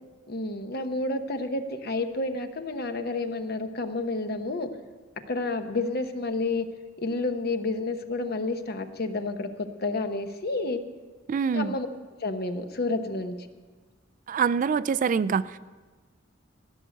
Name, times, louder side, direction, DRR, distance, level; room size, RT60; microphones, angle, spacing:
voice 1, 0.3-4.7 5.3-6.7 7.0-10.8 11.5-11.9 12.2-13.4, left 2 dB, 55° left, 8 dB, 1.0 m, -30 dB
voice 2, 11.3-11.8 14.3-15.6, right 6 dB, 45° right, 17 dB, 0.3 m, -25 dB
15.5 x 6.6 x 9.1 m, 1.4 s
head